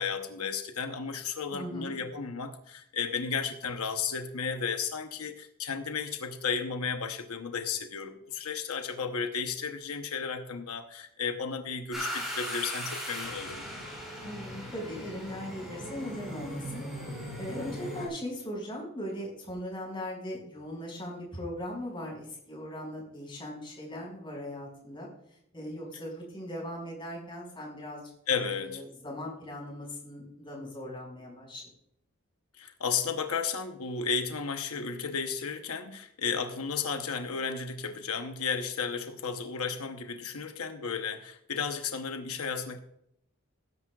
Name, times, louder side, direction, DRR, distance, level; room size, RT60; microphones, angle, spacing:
voice 1, 0.0-13.6 28.3-28.8 32.6-42.8, left 6 dB, 90° left, 6 dB, 0.9 m, -33 dB
voice 2, 1.5-1.9 14.2-16.8 17.4-25.1 25.5-28.0 28.6-31.6, equal, 20° left, -2 dB, 5.3 m, -39 dB
sound 1, 11.9-18.1, equal, ahead, 5.3 m, -38 dB
19.0 x 11.0 x 2.4 m, 0.77 s
head